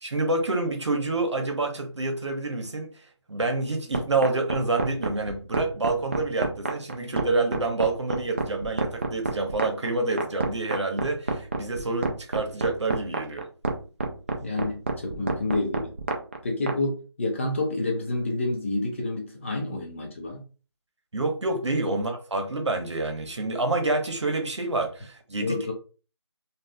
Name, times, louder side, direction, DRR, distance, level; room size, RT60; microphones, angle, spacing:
voice 1, 0.0-2.9 3.3-13.5 21.1-25.7, right 2 dB, 85° right, 0.9 m, -27 dB
sound 1, 3.9-16.8, right 3 dB, 25° right, 0.3 m, -28 dB
voice 2, 14.4-15.9 16.4-20.4 25.4-25.7, left 2 dB, 25° left, 0.6 m, -29 dB
3.4 x 2.4 x 2.2 m
figure-of-eight pair, 165°, 15 cm